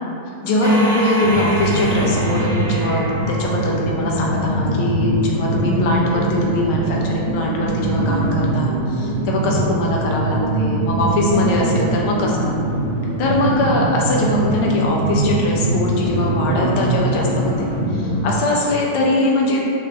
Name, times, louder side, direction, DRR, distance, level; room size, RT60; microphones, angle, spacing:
voice 1, 0.4-12.6 13.2-19.6, left 1 dB, 45° left, -2 dB, 0.5 m, -21 dB
sound 1, 0.6-4.3, right 1 dB, 85° right, 0.8 m, -27 dB
sound 2, 1.2-18.3, right 2 dB, 60° right, 0.5 m, -22 dB
2.4 x 2.3 x 3.2 m, 2.6 s
figure-of-eight pair, 90°, 0 cm